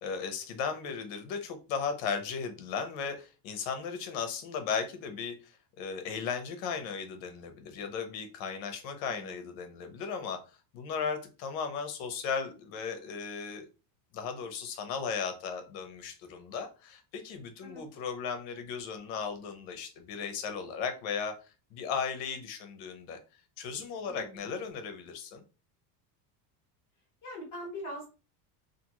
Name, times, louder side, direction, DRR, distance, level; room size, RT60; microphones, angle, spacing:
voice 1, 0.0-10.4 10.7-13.7 14.1-21.3 21.7-23.2 23.6-25.4, left 6 dB, 65° left, 7 dB, 0.8 m, -36 dB
voice 2, 9.0-9.5 17.6-17.8 24.1-24.5 27.2-28.1, equal, 35° left, -3 dB, 1.2 m, -42 dB
2.6 x 2.5 x 2.9 m, 0.33 s
cardioid pair, 155°, 49 cm